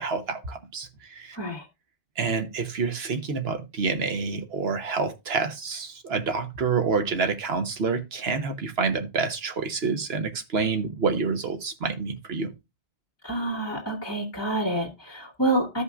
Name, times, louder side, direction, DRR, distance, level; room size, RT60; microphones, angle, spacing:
voice 1, 0.0-1.4 2.2-12.5, right 5 dB, 70° right, 1.3 m, -28 dB
voice 2, 1.3-1.7 13.2-15.8, right 1 dB, 15° left, 2.0 m, -28 dB
14.0 x 5.5 x 2.4 m
omnidirectional pair, 1.1 m